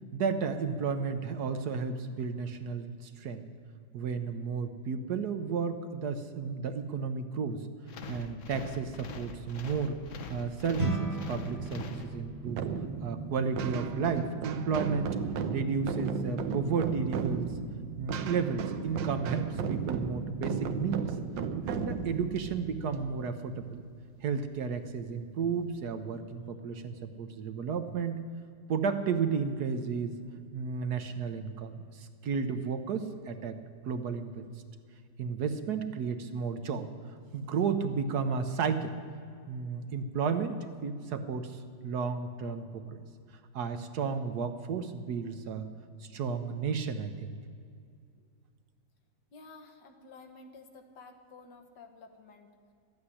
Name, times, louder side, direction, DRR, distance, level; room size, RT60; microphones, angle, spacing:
voice 1, 0.1-3.5 3.9-7.7 8.1-10.0 10.3-12.6 13.0-15.1 15.5-17.5 18.0-21.1 21.7-23.8 24.2-28.2 28.7-30.1 30.5-33.6 33.8-34.5 35.2-36.9 37.3-38.9 39.5-43.0 43.5-45.7 46.0-47.3, right 5 dB, 65° right, 8 dB, 1.2 m, -33 dB
sound 1, 7.9-12.6, left 4 dB, 50° left, 1.1 m, -43 dB
sound 2, 10.8-20.2, right 3 dB, 30° right, 1.4 m, -41 dB
sound 3, 12.4-23.9, right 6 dB, 80° right, 1.5 m, -35 dB
voice 2, 49.3-52.5, left 3 dB, 70° left, 4 dB, 1.9 m, -52 dB
13.0 x 8.8 x 9.8 m, 2.3 s
omnidirectional pair, 2.0 m